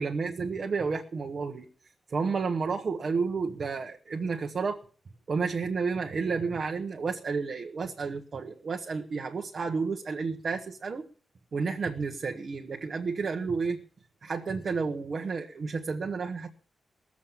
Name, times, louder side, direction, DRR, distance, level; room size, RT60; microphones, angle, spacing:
voice 1, 0.0-1.7 2.1-4.8 5.3-11.0 11.5-13.8 14.2-16.5, right 4 dB, 45° right, 2 dB, 1.1 m, -31 dB
19.0 x 7.4 x 7.3 m, 0.42 s
wide cardioid pair, 160°, 0 cm